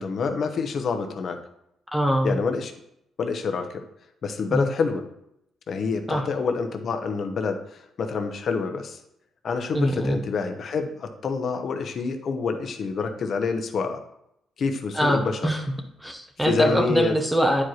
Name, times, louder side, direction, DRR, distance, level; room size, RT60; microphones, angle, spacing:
voice 1, 0.0-1.4 2.2-2.7 3.2-3.8 4.2-5.0 5.7-9.0 9.4-14.0 14.6-15.5 16.4-17.2, left 5 dB, 55° left, 6 dB, 0.9 m, -27 dB
voice 2, 1.9-2.4 4.5-4.7 6.1-6.2 9.7-10.2 15.0-15.6 16.0-17.6, equal, 5° right, 3 dB, 0.9 m, -23 dB
9.7 x 4.8 x 3.0 m, 0.79 s
cardioid pair, 90°, 0 cm